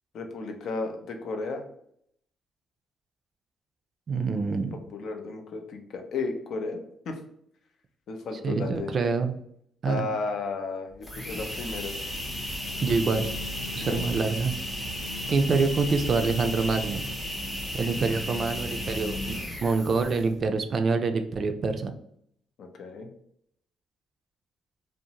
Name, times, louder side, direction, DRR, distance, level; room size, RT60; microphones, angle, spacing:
voice 1, 0.1-1.6 4.9-7.2 8.1-8.9 9.9-11.9 13.8-14.1 22.6-23.1, left 3 dB, 70° left, 4 dB, 0.5 m, -34 dB
voice 2, 4.1-4.8 8.4-9.3 9.8-10.0 12.8-13.3 13.7-14.5 15.3-17.0 17.7-21.9, right 4 dB, 50° right, 7 dB, 0.3 m, -26 dB
sound 1, 10.9-20.4, left 1 dB, 20° left, 0.6 m, -34 dB
2.6 x 2.0 x 2.8 m, 0.69 s
cardioid pair, 90°, 0 cm